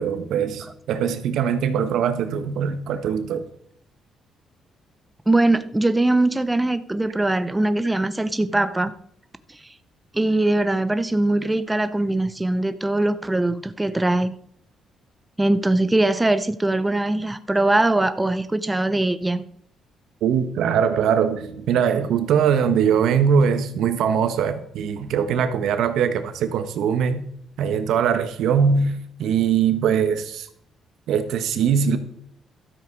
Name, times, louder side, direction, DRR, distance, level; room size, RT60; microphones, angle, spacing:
voice 1, 0.0-3.4 20.2-27.2 27.6-28.9 29.2-30.5 31.1-32.0, right 7 dB, 80° right, 9 dB, 1.3 m, -21 dB
voice 2, 5.3-8.9 10.1-14.3 15.4-19.4, right 2 dB, 10° right, 11 dB, 0.7 m, -21 dB
13.0 x 7.5 x 4.7 m, 0.68 s
cardioid pair, 90°, 0 cm